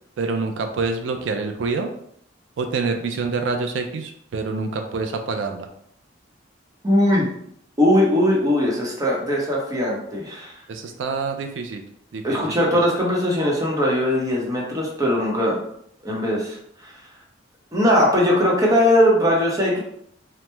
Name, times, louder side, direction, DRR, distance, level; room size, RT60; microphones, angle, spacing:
voice 1, 0.2-1.9 2.6-5.7 10.7-11.9 12.1-12.7, right 4 dB, 75° right, 5 dB, 0.3 m, -26 dB
voice 2, 6.8-7.3 7.8-10.5 12.2-15.6 16.0-16.6 16.8-16.9 17.7-19.8, left 1 dB, 20° right, -3 dB, 0.7 m, -20 dB
3.0 x 2.0 x 3.2 m, 0.70 s
head